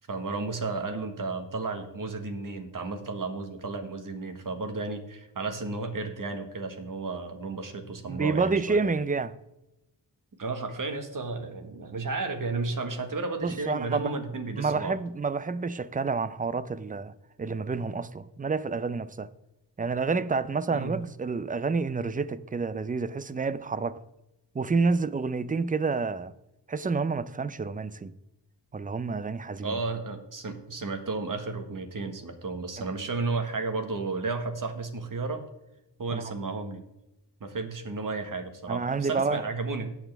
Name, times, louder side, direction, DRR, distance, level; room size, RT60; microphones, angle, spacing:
voice 1, 0.1-8.8 10.4-14.9 20.7-21.0 29.6-35.4 36.0-36.8 37.4-40.0, right 3 dB, 45° right, 1.5 m, -33 dB
voice 2, 8.1-9.3 13.4-14.1 14.6-17.1 17.4-19.3 19.8-24.0 24.5-26.3 26.7-28.1 28.7-29.8 36.1-36.2 38.7-39.4, right 4 dB, 20° right, 0.4 m, -29 dB
17.5 x 6.0 x 3.4 m
wide cardioid pair, 95°, 44 cm